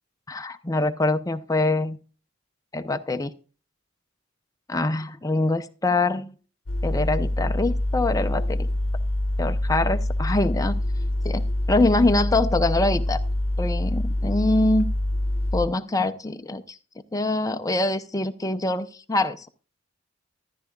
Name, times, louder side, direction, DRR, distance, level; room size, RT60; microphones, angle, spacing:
voice 1, 0.3-2.0 2.7-3.3 4.7-6.3 6.8-8.7 9.4-10.8 11.2-13.2 13.6-14.9 15.5-16.8 17.1-19.5, left 2 dB, 15° left, 8 dB, 0.6 m, -24 dB
sound 1, 6.7-15.7, left 1 dB, 75° left, 0.8 m, -25 dB
14.0 x 11.0 x 2.3 m, 0.38 s
head